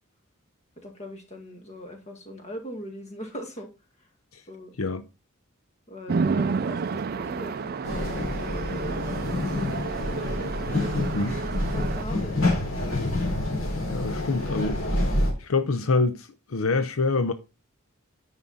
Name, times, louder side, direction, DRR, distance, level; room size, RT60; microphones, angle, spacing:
voice 1, 0.8-3.7 4.5-4.7 5.9-9.0 9.5-10.7 11.2-11.4 11.7-13.0, equal, 35° left, 2.0 m, -41 dB
Chatter / Traffic noise roadway noise / Train, 6.1-12.0, right 5 dB, 45° right, 0.4 m, -30 dB
sound 1, 7.8-15.3, left 2 dB, 65° left, 3.4 m, -27 dB
voice 2, 13.9-14.8 15.4-17.3, left 3 dB, 80° left, 0.7 m, -26 dB
9.7 x 5.4 x 4.1 m
head